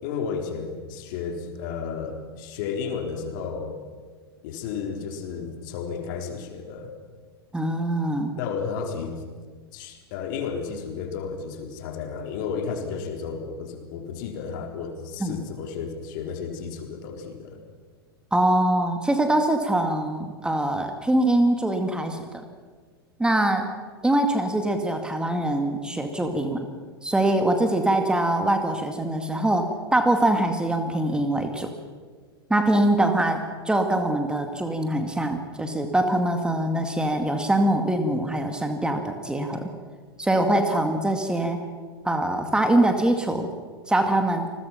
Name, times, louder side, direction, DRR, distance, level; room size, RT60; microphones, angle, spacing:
voice 1, 0.0-3.7 4.4-6.9 8.4-9.1 9.7-17.6, left 6 dB, 50° left, 4 dB, 3.8 m, -32 dB
voice 2, 7.5-8.3 15.2-15.4 18.3-22.2 23.2-23.7 24.0-26.7 27.0-31.7 32.5-33.4 33.7-39.7 40.2-41.6 42.0-43.5 43.9-44.5, right 1 dB, 5° right, 5 dB, 2.2 m, -23 dB
29.0 x 21.0 x 5.8 m, 1.5 s
figure-of-eight pair, 95°, 13 cm